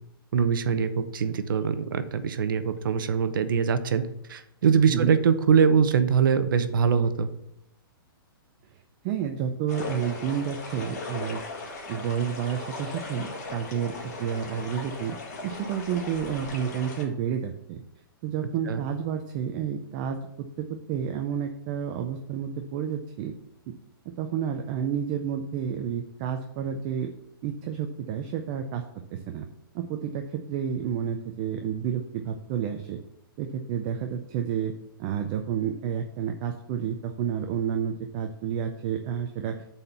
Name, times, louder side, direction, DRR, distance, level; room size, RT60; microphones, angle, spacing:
voice 1, 0.3-4.0 4.3-7.3 18.7-18.8, right 6 dB, 60° right, 11 dB, 0.8 m, -23 dB
voice 2, 9.0-11.4 11.9-15.2 15.4-17.8 18.2-20.2 20.6-23.3 24.2-27.1 27.4-28.8 29.1-29.5 29.7-33.0 33.4-34.7 35.0-39.6, right 8 dB, 20° right, 5 dB, 0.4 m, -30 dB
sound 1, 9.7-17.0, left 3 dB, 40° left, 1.9 m, -38 dB
7.0 x 4.3 x 6.8 m, 0.78 s
hypercardioid pair, 170°, 12 cm